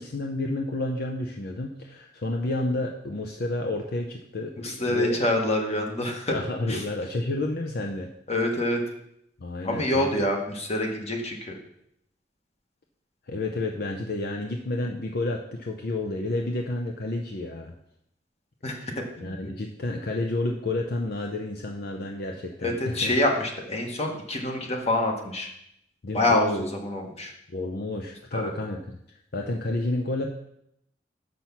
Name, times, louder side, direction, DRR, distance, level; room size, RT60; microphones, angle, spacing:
voice 1, 0.0-5.2 6.3-8.1 9.4-10.1 13.2-17.7 18.8-18.9 19.2-23.1 26.0-26.7 27.5-30.3, left 2 dB, 60° left, 2 dB, 0.7 m, -30 dB
voice 2, 4.6-6.3 6.7-6.8 8.3-8.8 9.6-11.6 18.6-19.3 22.6-25.5 26.1-27.3 28.3-28.5, left 1 dB, 35° left, 2 dB, 1.4 m, -26 dB
7.1 x 6.1 x 5.9 m, 0.76 s
head